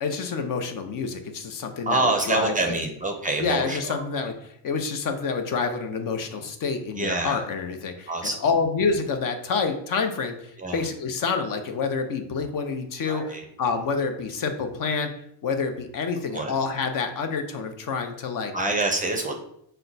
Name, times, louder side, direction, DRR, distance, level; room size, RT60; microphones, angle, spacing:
voice 1, 0.0-2.8 3.4-15.1 15.4-18.5, left 5 dB, 50° left, 6 dB, 0.6 m, -28 dB
voice 2, 1.9-4.0 7.0-7.4 8.1-8.4 10.6-10.8 13.0-13.4 16.3-16.5 18.5-19.3, right 2 dB, 20° right, 3 dB, 0.5 m, -26 dB
5.7 x 2.2 x 3.9 m, 0.73 s
cardioid pair, 130°, 43 cm